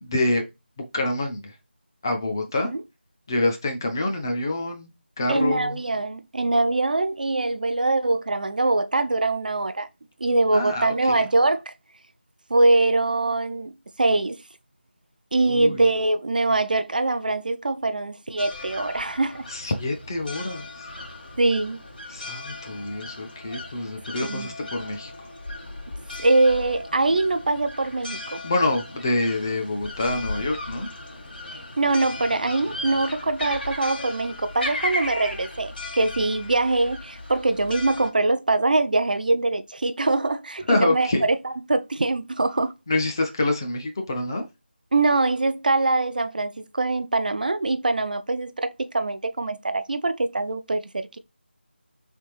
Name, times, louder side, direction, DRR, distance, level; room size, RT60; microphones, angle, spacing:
voice 1, 0.0-0.5 0.9-1.5 2.0-2.7 3.3-5.8 10.5-11.2 15.4-15.8 19.5-20.9 22.1-25.1 28.4-30.9 40.7-41.3 42.9-44.4, left 2 dB, 20° left, 0.5 m, -26 dB
voice 2, 5.3-9.9 10.2-11.7 12.5-13.7 14.0-14.4 15.3-19.4 21.4-21.8 24.2-24.5 26.2-28.4 31.8-41.1 41.7-42.7 44.9-51.2, right 2 dB, 50° right, 0.4 m, -23 dB
sound 1, 18.4-38.1, left 2 dB, 55° left, 1.4 m, -36 dB
3.3 x 3.3 x 3.0 m
figure-of-eight pair, 170°, 6 cm